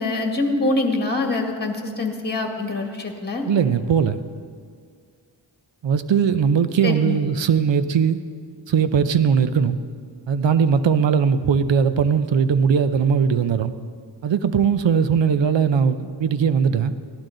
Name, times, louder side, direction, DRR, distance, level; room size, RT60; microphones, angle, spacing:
voice 1, 0.0-3.5 6.8-7.2, left 2 dB, 20° left, 3 dB, 1.7 m, -24 dB
voice 2, 3.5-4.2 5.8-8.2 8.7-9.8 10.3-13.7 14.2-16.9, right 6 dB, 65° right, 12 dB, 0.7 m, -19 dB
15.5 x 12.0 x 3.9 m, 2.1 s
cardioid pair, 50°, 47 cm